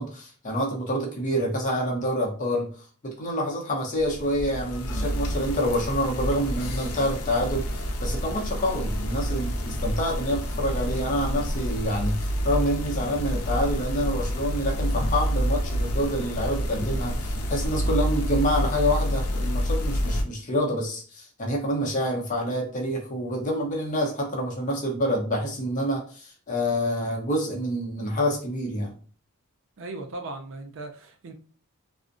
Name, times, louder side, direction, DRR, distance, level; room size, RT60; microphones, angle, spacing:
voice 1, 0.0-2.7 3.0-28.9, equal, 35° left, 0.6 m, -27 dB
sound 1, 4.0-20.2, equal, 90° left, 0.5 m, -28 dB
voice 2, 29.8-31.3, right 2 dB, 60° right, 0.4 m, -37 dB
2.5 x 2.1 x 2.5 m
head